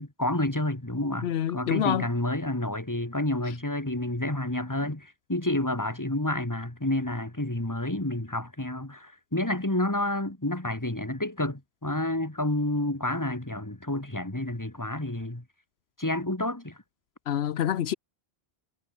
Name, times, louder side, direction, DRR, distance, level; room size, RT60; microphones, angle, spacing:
voice 1, 0.0-15.4 16.0-16.8, left 1 dB, 20° left, 2.5 m, -29 dB
voice 2, 1.2-2.1 17.3-17.9, left 10 dB, 85° left, 1.0 m, -27 dB
omnidirectional pair, 1.0 m